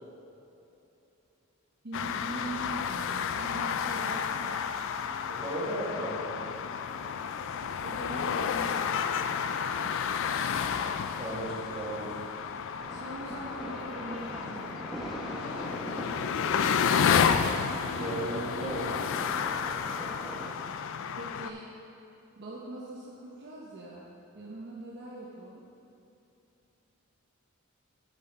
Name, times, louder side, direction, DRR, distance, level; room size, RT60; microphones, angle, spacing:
voice 1, 1.8-4.6 7.8-8.9 9.5-10.0 12.9-15.1 21.1-21.7 22.4-24.1 24.3-25.6, right 1 dB, 50° right, -5 dB, 0.9 m, -42 dB
sound 1, 1.9-21.5, left 7 dB, 60° left, 0.3 m, -31 dB
sound 2, 4.9-12.8, left 1 dB, 20° left, 1.8 m, -58 dB
voice 2, 5.3-6.3 11.2-12.2 17.9-19.0, right 1 dB, 30° right, -6 dB, 1.6 m, -35 dB
sound 3, 12.8-20.5, equal, ahead, 0.8 m, -41 dB
7.7 x 7.0 x 4.1 m, 2.8 s
head